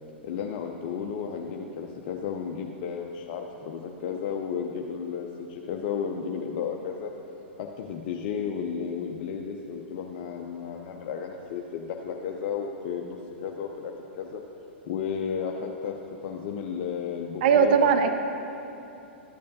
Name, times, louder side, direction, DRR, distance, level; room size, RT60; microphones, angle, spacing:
voice 1, 0.2-7.1 7.6-14.4 14.9-16.0 16.2-18.1, left 7 dB, 50° left, 1 dB, 0.6 m, -33 dB
voice 2, 17.4-18.1, right 6 dB, 55° right, 8 dB, 0.5 m, -19 dB
13.0 x 8.4 x 2.8 m, 2.9 s
figure-of-eight pair, 105°, 6 cm